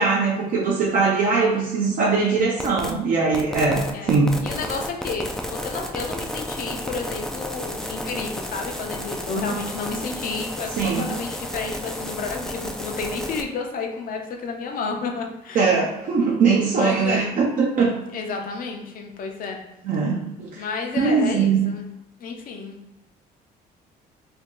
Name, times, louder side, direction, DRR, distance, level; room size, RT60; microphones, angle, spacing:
voice 1, 0.0-4.3 10.8-11.1 15.5-18.0 19.8-20.6 20.9-21.6, right 4 dB, 55° right, -3 dB, 0.6 m, -21 dB
voice 2, 2.2-2.5 3.9-15.7 16.7-17.3 18.1-19.6 20.6-21.9 22.2-22.8, left 4 dB, 55° left, 2 dB, 0.7 m, -31 dB
sound 1, 2.6-2.9 3.3-13.4, equal, 5° left, 0.4 m, -32 dB
2.8 x 2.3 x 3.7 m, 0.94 s
cardioid pair, 110°, 17 cm